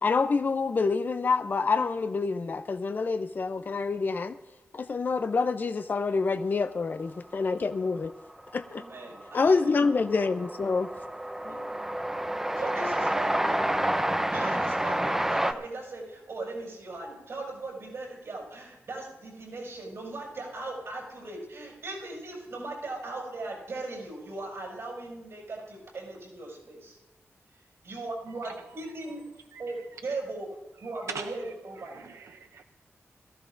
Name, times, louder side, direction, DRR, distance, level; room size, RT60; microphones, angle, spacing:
voice 1, 0.0-4.4 4.7-8.1 8.5-8.8 9.3-10.9 11.5-11.6, left 4 dB, 40° left, 0.5 m, -27 dB
Train, 8.1-8.2 8.4-15.5, right 1 dB, 10° right, 0.6 m, -29 dB
voice 2, 8.7-9.7 11.4-11.8 12.6-13.8 14.3-27.0 27.8-29.2 29.6-30.5 30.8-32.1, right 2 dB, 70° right, 5.9 m, -38 dB
voice 3, 29.5-30.2 30.8-32.6, right 5 dB, 85° right, 0.5 m, -43 dB
22.5 x 14.5 x 2.6 m
wide cardioid pair, 145°, 5 cm